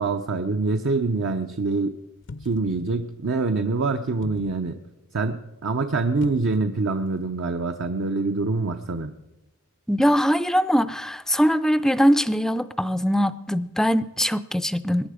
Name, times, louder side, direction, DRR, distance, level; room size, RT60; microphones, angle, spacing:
voice 1, 0.0-2.0 2.4-4.8 5.1-9.1, right 3 dB, 60° right, 6 dB, 0.7 m, -25 dB
sound 1, 2.2-2.8 4.2-4.6 6.2-6.8 7.1-7.2, left 3 dB, 55° left, 0.5 m, -40 dB
voice 2, 9.9-15.1, equal, ahead, 13 dB, 0.4 m, -22 dB
21.5 x 10.0 x 5.0 m, 1.0 s
head